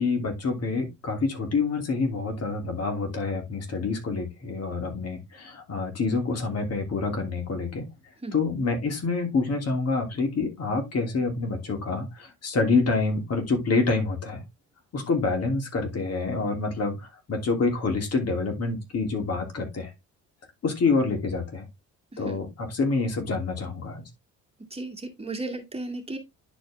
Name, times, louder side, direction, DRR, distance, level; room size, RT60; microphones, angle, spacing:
voice 1, 0.0-7.9 8.3-14.4 14.9-17.0 17.3-19.9 20.6-21.6 22.2-24.0, left 3 dB, 55° left, 2.9 m, -27 dB
voice 2, 24.7-26.2, right 2 dB, 20° right, 2.1 m, -34 dB
10.0 x 4.6 x 3.4 m
cardioid pair, 90°, 30 cm